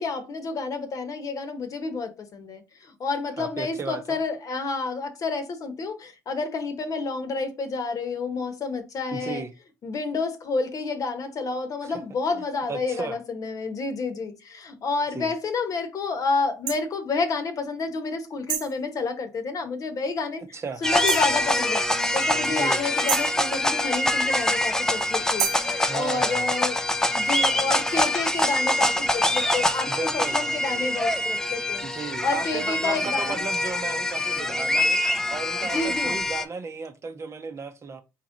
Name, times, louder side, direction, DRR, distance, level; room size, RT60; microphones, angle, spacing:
voice 1, 0.0-9.4 9.8-20.4 20.8-26.8 27.1-31.8 32.2-33.4 35.7-36.2, left 4 dB, 45° left, 1.1 m, -29 dB
voice 2, 3.4-4.2 9.1-9.5 11.8-12.0 12.7-13.2 15.1-15.3 20.5-20.8 22.5-22.8 25.8-26.5 29.9-30.4 31.8-35.0 35.3-38.0, right 5 dB, 35° right, 0.8 m, -34 dB
sound 1, 16.7-16.8 18.5-18.8 21.1-21.3 23.1-23.4 25.4-25.7, right 10 dB, 80° right, 0.9 m, -28 dB
sound 2, 20.8-36.4, left 1 dB, 5° left, 0.5 m, -25 dB
3.7 x 3.0 x 3.9 m
supercardioid pair, 75°, 8 cm